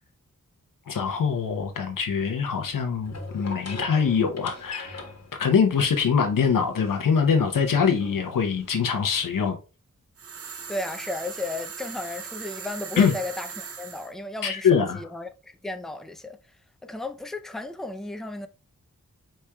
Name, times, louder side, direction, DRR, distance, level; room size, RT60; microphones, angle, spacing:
voice 1, 0.9-5.0 5.4-9.6 13.0-13.1 14.4-15.0, left 6 dB, 80° left, 0.7 m, -23 dB
sound 1, 1.0-9.5, left 2 dB, 50° left, 1.3 m, -44 dB
sound 2, 10.2-14.1, right 6 dB, 45° right, 0.6 m, -39 dB
voice 2, 10.7-16.4 16.8-18.5, left 2 dB, ahead, 0.4 m, -34 dB
4.8 x 4.3 x 2.2 m
wide cardioid pair, 80°, 33 cm